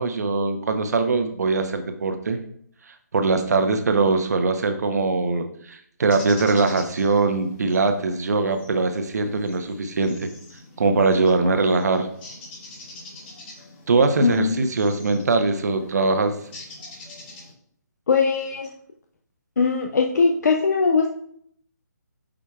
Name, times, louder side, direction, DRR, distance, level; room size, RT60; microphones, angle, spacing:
voice 1, 0.0-2.4 3.1-10.3 10.8-12.1 13.9-16.3, right 3 dB, 60° right, 7 dB, 0.9 m, -21 dB
sound 1, 6.1-17.5, left 2 dB, 35° left, 2.6 m, -44 dB
voice 2, 14.2-14.6 18.1-18.7 19.6-21.1, left 4 dB, 65° left, 2 dB, 0.7 m, -20 dB
8.6 x 5.1 x 2.4 m, 0.66 s
figure-of-eight pair, 145°, 10 cm